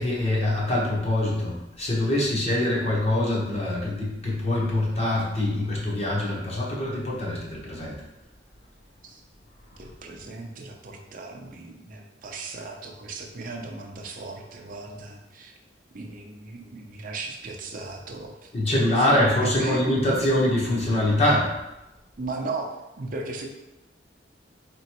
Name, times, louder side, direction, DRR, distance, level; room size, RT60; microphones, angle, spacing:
voice 1, 0.0-8.0 18.5-21.5, left 1 dB, 35° left, -4 dB, 1.0 m, -24 dB
voice 2, 9.7-15.5 15.9-18.5 19.0-20.4 22.2-23.5, right 3 dB, 45° right, 1 dB, 0.5 m, -36 dB
4.3 x 3.0 x 2.9 m, 0.96 s
head